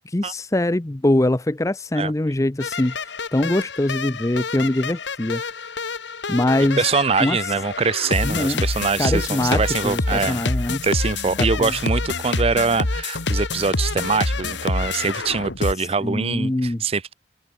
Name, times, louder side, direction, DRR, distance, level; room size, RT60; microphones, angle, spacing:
voice 1, 0.0-5.4 6.3-6.9 7.2-7.5 8.2-8.6 9.0-10.8 11.4-11.7 15.8-16.8, left 1 dB, 15° left, 0.5 m, -23 dB
sound 1, 2.6-15.7, left 3 dB, 75° left, 2.0 m, -27 dB
voice 2, 6.8-10.4 10.8-17.1, right 4 dB, 30° right, 0.5 m, -23 dB
open air
head